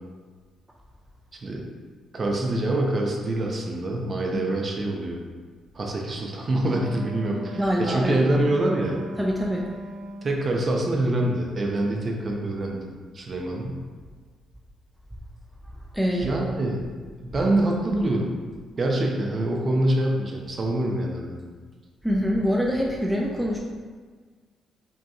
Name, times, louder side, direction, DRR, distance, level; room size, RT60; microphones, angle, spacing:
voice 1, 2.1-5.2 5.7-9.0 10.2-12.8 13.1-13.8 16.1-16.8 17.2-18.3 18.8-21.4, right 1 dB, 40° right, 0 dB, 0.7 m, -25 dB
Wind instrument woodwind instrument, 6.6-10.5, right 1 dB, 70° right, 0.3 m, -38 dB
voice 2, 7.6-8.2 9.2-9.7 15.9-16.3 22.0-23.6, equal, 5° right, -2 dB, 0.4 m, -24 dB
5.2 x 2.8 x 2.4 m, 1.5 s
cardioid pair, 90°, 0 cm